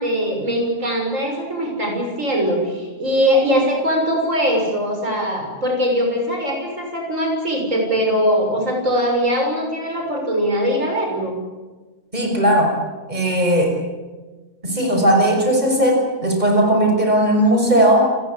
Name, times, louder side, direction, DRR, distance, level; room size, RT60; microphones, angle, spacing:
voice 1, 0.0-11.4, equal, 85° right, 2 dB, 6.9 m, -21 dB
voice 2, 12.1-12.7 13.1-13.8 14.6-18.0, right 1 dB, 35° right, 2 dB, 6.3 m, -17 dB
29.5 x 21.0 x 8.6 m, 1.3 s
omnidirectional pair, 1.3 m